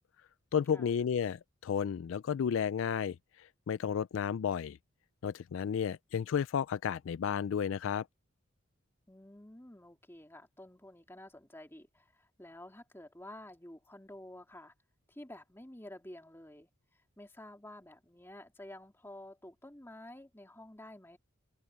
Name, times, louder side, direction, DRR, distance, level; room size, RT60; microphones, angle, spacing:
voice 1, 0.5-4.8 5.2-8.1, left 7 dB, 65° left, 0.3 m, -32 dB
voice 2, 9.1-14.7 15.1-16.7 17.2-21.2, left 1 dB, 10° left, 2.3 m, -51 dB
head